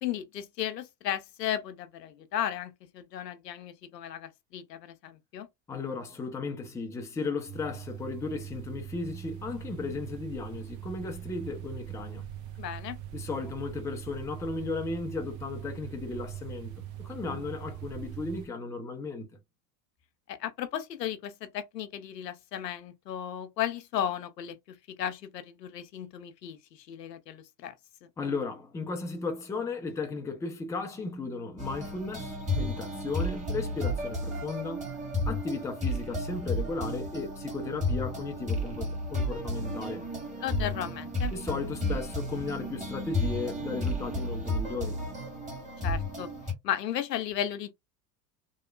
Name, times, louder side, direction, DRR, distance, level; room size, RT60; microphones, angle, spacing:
voice 1, 0.0-5.5 12.6-13.0 20.3-27.7 40.4-41.3 45.8-46.3 46.6-47.7, left 10 dB, 85° left, 0.6 m, -35 dB
voice 2, 5.7-12.3 13.1-19.3 28.2-35.0 35.3-40.0 41.3-45.0, left 4 dB, 5° left, 0.4 m, -35 dB
sound 1, 7.5-18.5, right 12 dB, 40° right, 0.7 m, -42 dB
sound 2, 31.6-46.5, left 1 dB, 15° right, 1.6 m, -33 dB
2.9 x 2.1 x 2.3 m
hypercardioid pair, 80°, 48 cm